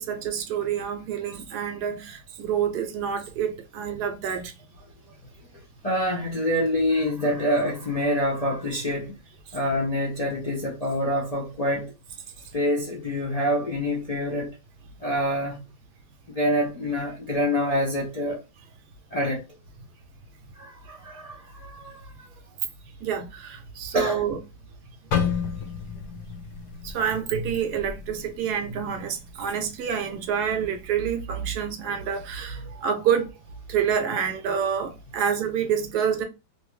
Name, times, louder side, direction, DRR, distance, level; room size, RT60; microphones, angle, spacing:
voice 1, 0.0-4.5 23.0-24.4 26.8-33.3 33.7-36.2, right 8 dB, 75° right, 1.1 m, -27 dB
voice 2, 5.8-9.2 9.5-11.9 12.5-14.6 15.0-15.6 16.3-18.4 19.1-19.4 20.6-22.1 23.9-24.2 32.5-32.8, equal, 45° left, 0.4 m, -26 dB
sound 1, 25.1-29.1 29.5-29.8 30.4-30.7, left 7 dB, 70° left, 0.9 m, -31 dB
2.7 x 2.5 x 3.0 m
omnidirectional pair, 1.8 m